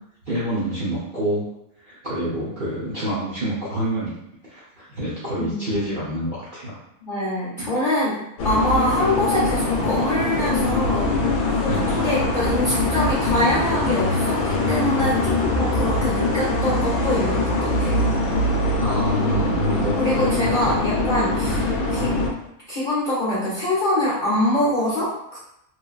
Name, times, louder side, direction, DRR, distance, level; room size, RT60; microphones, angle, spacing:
voice 1, 0.3-1.4 1.8-4.1 4.5-6.8 7.6-7.7 11.7-11.9 18.6-20.8 21.4-21.6, equal, 45° right, -9 dB, 0.7 m, -27 dB
voice 2, 5.4-6.1 7.0-8.2 8.4-11.1 11.5-18.1 19.2-19.5 20.0-21.6 21.9-22.1 22.7-25.4, left 1 dB, 45° left, -9 dB, 0.7 m, -24 dB
sound 1, 8.4-22.3, left 2 dB, 90° left, 1.1 m, -22 dB
3.2 x 2.2 x 2.3 m, 0.81 s
omnidirectional pair, 1.5 m